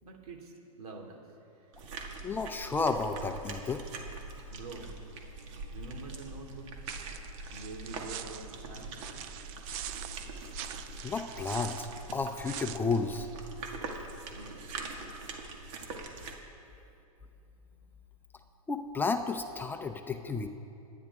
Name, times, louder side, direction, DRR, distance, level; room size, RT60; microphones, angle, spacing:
voice 1, 0.0-2.4 4.5-4.9 5.7-6.7 7.5-9.0 14.3-14.8 17.4-17.5 17.8-17.9 18.4-18.5, right 3 dB, 80° right, 1 dB, 2.8 m, -47 dB
sound 1, 1.7-16.3, right 3 dB, 55° right, 2.1 m, -43 dB
voice 2, 2.2-3.8 11.0-13.3 18.7-20.5, left 4 dB, 10° left, 6 dB, 0.5 m, -32 dB
sound 2, 6.9-12.8, right 11 dB, 40° right, 0.6 m, -44 dB
27.0 x 10.5 x 3.6 m, 2.8 s
hypercardioid pair, 140°, 19 cm